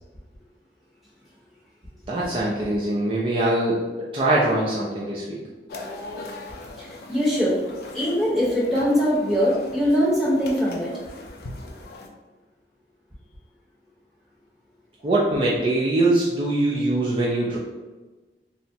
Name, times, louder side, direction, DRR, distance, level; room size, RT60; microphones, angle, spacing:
voice 1, 2.1-5.4 15.0-17.6, right 2 dB, 30° right, -6 dB, 0.3 m, -22 dB
sound 1, 5.7-12.1, left 2 dB, 60° left, 0.4 m, -40 dB
voice 2, 6.8-7.6 7.9-10.9, equal, ahead, -8 dB, 0.8 m, -22 dB
3.3 x 2.0 x 2.7 m, 1.2 s
head